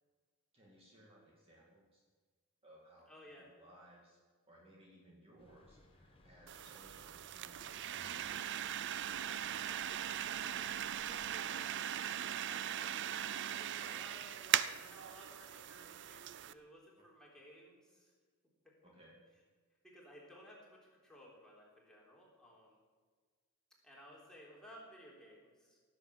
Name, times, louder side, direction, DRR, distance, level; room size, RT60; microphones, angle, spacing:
voice 1, 0.5-2.0 2.6-3.1 3.6-4.2 4.5-9.1 17.0-17.1 18.8-19.1, equal, 25° right, -4 dB, 2.3 m, -62 dB
voice 2, 3.1-3.5 10.4-11.9 12.4-13.0 13.3-18.1 18.6-18.7 19.8-22.8 23.8-25.8, equal, 5° left, -4 dB, 3.7 m, -58 dB
sound 1, 5.4-11.3, left 1 dB, 25° left, 1.5 m, -64 dB
sound 2, 6.5-16.5, right 10 dB, 55° right, 0.5 m, -39 dB
17.0 x 7.8 x 7.6 m, 1.5 s
head